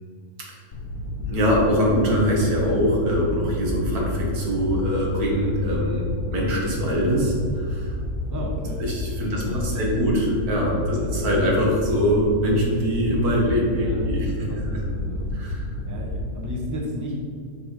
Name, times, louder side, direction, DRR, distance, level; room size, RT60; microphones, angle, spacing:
sound 1, 0.7-16.3, left 2 dB, 80° left, 1.2 m, -30 dB
voice 1, 1.1-8.0 8.8-14.8 15.3-15.7, equal, 80° right, -2 dB, 1.9 m, -23 dB
voice 2, 8.3-8.8 9.2-9.9 10.9-11.2 13.8-15.3 15.8-17.1, left 1 dB, 15° right, -2 dB, 0.9 m, -33 dB
6.0 x 4.7 x 5.1 m, 2.2 s
omnidirectional pair, 1.6 m